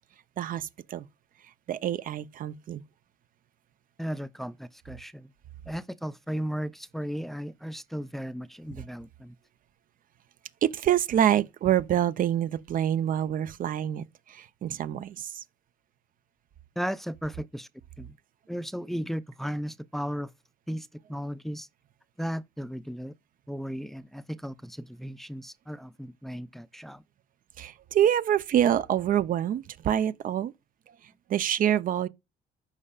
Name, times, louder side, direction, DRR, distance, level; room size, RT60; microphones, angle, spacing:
voice 1, 0.4-1.1 1.7-2.8 10.6-15.4 27.6-30.5 30.9-32.1, right 10 dB, 55° right, 0.7 m, -26 dB
voice 2, 4.0-5.3 5.7-9.4 16.8-17.7 18.0-18.2 18.5-20.3 20.7-21.7 22.2-23.1 23.5-27.0, equal, ahead, 0.5 m, -35 dB
14.0 x 5.5 x 2.5 m
cardioid pair, 110°, 17 cm